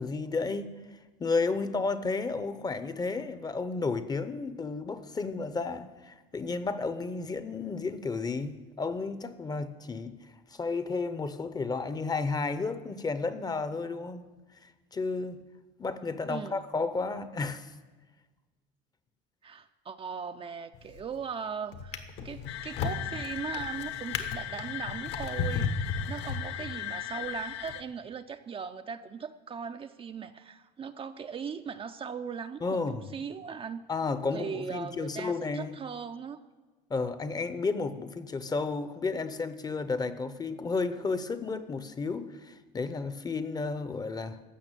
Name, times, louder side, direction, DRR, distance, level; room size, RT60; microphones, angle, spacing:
voice 1, 0.0-10.2 10.5-14.3 14.6-15.4 15.8-17.7 32.6-33.0 33.9-35.8 36.9-44.4, left 4 dB, 20° left, 13 dB, 0.7 m, -32 dB
voice 2, 16.3-16.6 19.4-33.8 34.3-36.4, right 6 dB, 30° right, 8 dB, 0.5 m, -39 dB
Drawer open or close, 20.7-21.2 21.7-26.9 27.6-27.8, left 5 dB, 65° left, 1.3 m, -35 dB
sound 1, 22.5-27.8, left 13 dB, 85° left, 0.7 m, -38 dB
15.0 x 5.9 x 9.0 m, 1.3 s
cardioid pair, 125°, 20 cm